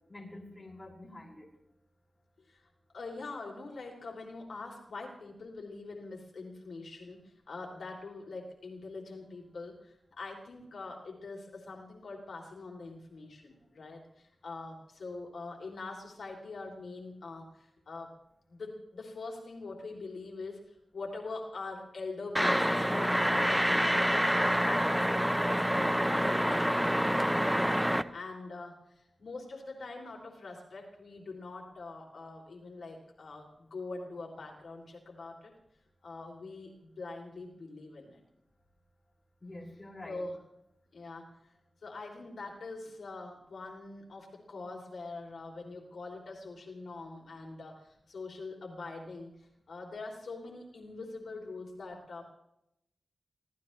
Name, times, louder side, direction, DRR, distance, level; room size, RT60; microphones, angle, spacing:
voice 1, 0.0-1.5 39.4-40.2, left 1 dB, 20° left, -3 dB, 6.0 m, -47 dB
voice 2, 2.9-18.1 18.5-24.1 24.5-26.9 27.5-27.8 28.1-35.5 36.0-38.2 40.0-40.4 40.9-41.3 41.8-52.2, left 3 dB, 70° left, 0 dB, 3.3 m, -44 dB
sound 1, 22.3-28.0, equal, 5° right, 0.7 m, -27 dB
24.5 x 17.0 x 3.3 m, 0.81 s
wide cardioid pair, 150°, 0 cm